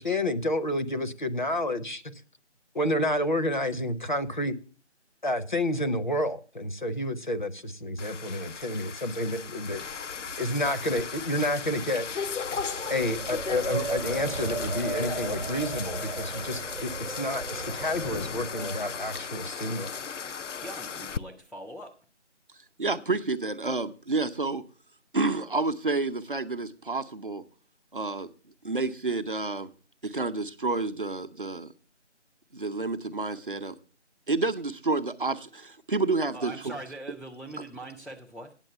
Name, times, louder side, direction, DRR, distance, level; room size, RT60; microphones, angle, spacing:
voice 1, 0.0-2.0 2.7-4.6 5.2-9.8 10.4-12.2 12.9-20.0, left 1 dB, 40° left, 9 dB, 0.7 m, -29 dB
sound 1, 8.0-21.2, left 6 dB, 80° left, 0.5 m, -36 dB
Wind, 9.4-19.5, right 4 dB, 80° right, 0.8 m, -38 dB
voice 2, 20.6-22.0 36.3-38.5, right 1 dB, ahead, -2 dB, 0.4 m, -42 dB
voice 3, 22.8-24.6 25.1-27.4 27.9-28.3 28.6-29.7 30.0-31.7 32.5-33.8 34.3-36.7, right 3 dB, 45° right, 8 dB, 0.7 m, -29 dB
9.0 x 7.2 x 6.7 m, 0.39 s
figure-of-eight pair, 165°, 36 cm